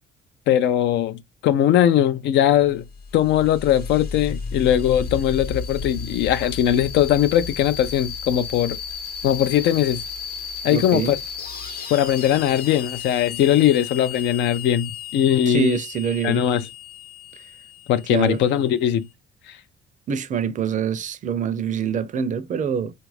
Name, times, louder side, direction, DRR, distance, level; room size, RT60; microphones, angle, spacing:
voice 1, 0.5-2.9 3.1-8.8 9.2-10.0 10.6-11.2 11.9-15.8 16.2-16.7 17.9-19.1 19.5-19.6, left 11 dB, 70° left, 0.4 m, -20 dB
sound 1, 2.6-18.9, left 6 dB, 55° left, 0.8 m, -34 dB
voice 2, 10.7-11.1 15.5-16.4 18.1-18.4 20.1-22.9, right 7 dB, 40° right, 0.5 m, -25 dB
3.3 x 2.4 x 3.1 m
cardioid pair, 95°, 19 cm